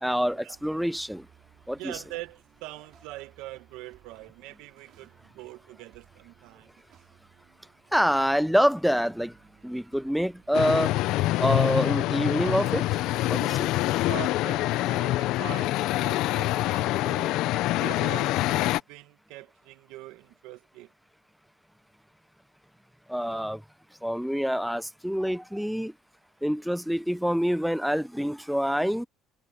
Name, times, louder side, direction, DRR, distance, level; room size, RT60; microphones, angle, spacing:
voice 1, 0.0-1.2 1.7-2.0 7.9-9.3 9.6-10.9 11.4-12.9 13.3-13.7 23.1-23.6 24.0-25.9 26.4-29.1, equal, ahead, 0.5 m, -26 dB
sound 1, 0.5-10.8, right 12 dB, 55° right, 5.1 m, -60 dB
voice 2, 1.7-6.7 10.9-11.0 14.1-17.4 17.8-20.9 23.3-23.4, right 18 dB, 85° right, 1.3 m, -43 dB
sound 2, 10.5-18.8, left 16 dB, 70° left, 0.5 m, -25 dB
cardioid pair, 140°, 0 cm